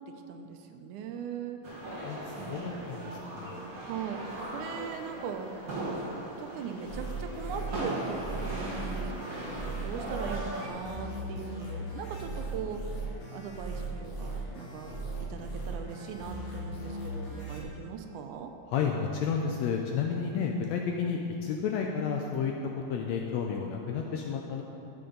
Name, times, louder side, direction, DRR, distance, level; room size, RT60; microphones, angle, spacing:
voice 1, 0.1-1.6 2.4-6.1 6.4-12.8 13.3-18.5 20.4-20.5, right 6 dB, 80° right, 5 dB, 2.0 m, -40 dB
sound 1, 1.6-10.7, right 1 dB, 40° right, 1.3 m, -38 dB
voice 2, 2.0-3.5 18.7-22.5 22.9-24.6, left 6 dB, 80° left, 1 dB, 1.6 m, -31 dB
sound 2, 6.8-17.6, right 2 dB, 60° left, 2.6 m, -38 dB
14.0 x 6.9 x 3.9 m, 2.9 s
omnidirectional pair, 3.6 m